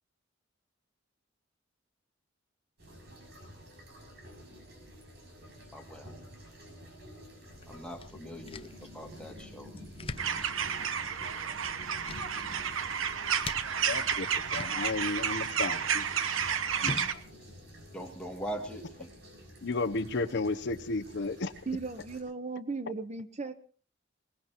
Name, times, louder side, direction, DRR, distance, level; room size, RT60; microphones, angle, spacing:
sound 1, 2.8-22.2, equal, 60° right, 6.6 m, -51 dB
voice 1, 5.7-6.1 7.7-9.7 17.9-19.1, right 1 dB, 5° left, 1 dB, 2.3 m, -41 dB
sound 2, 7.5-18.7, left 3 dB, 30° left, 0.7 m, -46 dB
sound 3, 10.2-17.1, right 7 dB, 90° right, 1.0 m, -31 dB
voice 2, 13.9-14.3 14.5-16.0 16.8-17.2 19.6-21.5, left 3 dB, 60° left, 12 dB, 0.8 m, -33 dB
voice 3, 21.7-23.5, right 4 dB, 35° right, 11 dB, 0.9 m, -36 dB
21.5 x 20.0 x 3.0 m, 0.40 s
head